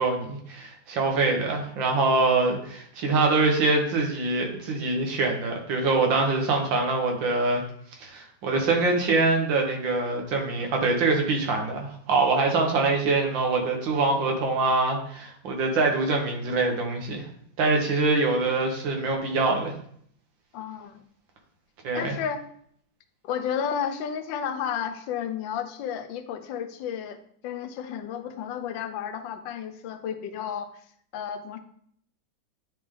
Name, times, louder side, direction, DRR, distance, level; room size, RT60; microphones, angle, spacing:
voice 1, 0.0-7.6 8.0-17.2 17.6-19.7 21.8-22.2, right 3 dB, 85° right, 2 dB, 1.9 m, -24 dB
voice 2, 20.5-21.0 21.9-22.4 23.2-30.8 31.1-31.6, left 8 dB, 85° left, 8 dB, 1.3 m, -32 dB
9.7 x 3.4 x 3.6 m, 0.65 s
omnidirectional pair, 2.0 m